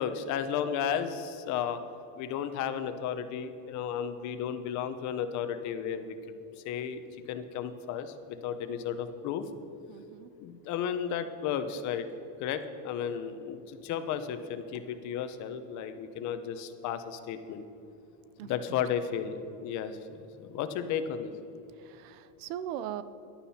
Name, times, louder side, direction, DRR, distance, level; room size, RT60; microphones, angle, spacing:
voice 1, 0.0-1.8 2.2-6.4 6.6-7.0 7.3-9.5 10.4-12.1 12.4-17.7 18.4-21.3, left 8 dB, 50° left, 9 dB, 0.9 m, -34 dB
voice 2, 9.9-10.3 18.4-18.8 21.7-23.0, right 11 dB, 90° right, 15 dB, 0.8 m, -40 dB
15.0 x 11.5 x 4.3 m, 2.9 s
cardioid pair, 160°, 38 cm